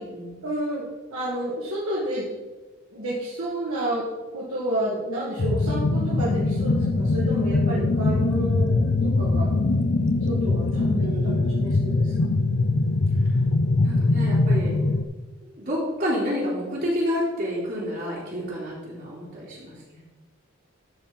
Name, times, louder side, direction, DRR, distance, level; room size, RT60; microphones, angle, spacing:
voice 1, 0.4-2.3 2.9-9.5 10.3-12.3, right 1 dB, 85° right, -7 dB, 2.1 m, -30 dB
sound 1, 5.4-15.0, left 2 dB, 55° left, 0.5 m, -22 dB
voice 2, 11.0-11.9 13.2-13.3 13.8-14.8 15.4-20.0, equal, 45° right, -7 dB, 3.2 m, -30 dB
13.0 x 4.5 x 5.3 m, 1.2 s
head